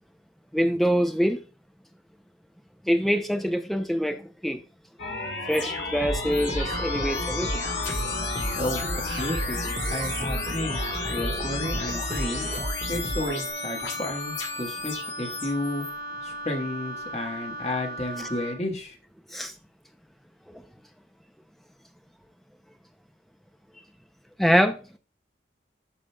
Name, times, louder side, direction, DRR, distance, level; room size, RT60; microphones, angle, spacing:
voice 1, 0.5-1.4 2.8-4.6 5.4-7.6 14.9-15.0 19.3-19.5 20.5-20.6 24.4-24.8, equal, ahead, 0.5 m, -25 dB
sound 1, 5.0-15.9, left 4 dB, 80° left, 1.5 m, -33 dB
sound 2, 6.0-13.4, right 1 dB, 35° right, 1.5 m, -33 dB
Wind instrument woodwind instrument, 6.5-18.6, equal, 55° right, 0.6 m, -37 dB
voice 2, 8.5-9.6 9.9-10.8 11.1-12.4 12.9-15.9 16.2-19.0, left 1 dB, 35° left, 1.3 m, -32 dB
11.5 x 5.0 x 2.2 m
head